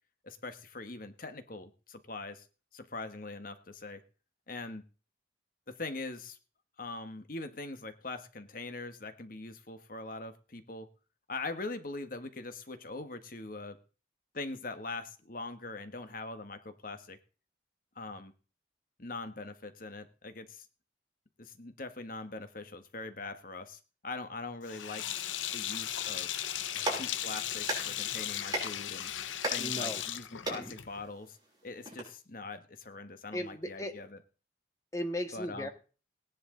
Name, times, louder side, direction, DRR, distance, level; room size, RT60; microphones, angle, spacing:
voice 1, 0.2-2.5 2.7-4.0 4.5-4.8 5.7-6.4 6.8-10.9 11.3-13.8 14.3-17.2 17.9-18.3 19.0-20.7 21.4-25.2 25.5-26.5 26.9-29.1 29.5-31.4 31.6-34.2 35.3-35.7, left 3 dB, 45° left, 9 dB, 1.4 m, -42 dB
Sink (filling or washing), 24.7-31.1, left 11 dB, 90° left, 0.8 m, -36 dB
Clapping, 26.5-32.0, right 2 dB, 25° right, 6.4 m, -40 dB
voice 2, 29.6-30.0 30.5-30.8 33.3-33.9 34.9-35.7, equal, 15° left, 5 dB, 1.7 m, -37 dB
18.0 x 10.5 x 3.8 m, 0.37 s
head